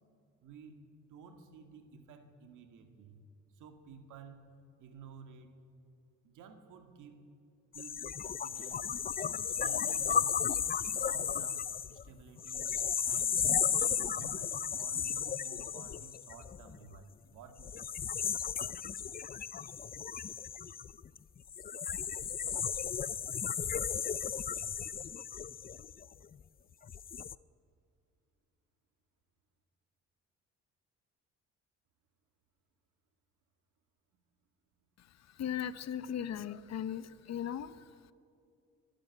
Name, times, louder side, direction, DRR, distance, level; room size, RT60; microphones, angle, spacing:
voice 1, 0.4-0.8 1.1-3.2 3.5-4.4 4.8-5.5 6.2-7.2 7.7-8.9 9.6-12.7 13.0-13.4 13.8-18.0, right 5 dB, 85° right, 7 dB, 2.2 m, -53 dB
sound 1, 7.7-17.0 17.6-26.3 26.8-27.3, left 7 dB, 30° left, 0.5 m, -34 dB
voice 2, 35.0-37.8, left 9 dB, 60° left, 14 dB, 0.9 m, -38 dB
23.5 x 12.0 x 9.9 m, 2.5 s
cardioid pair, 90°, 30 cm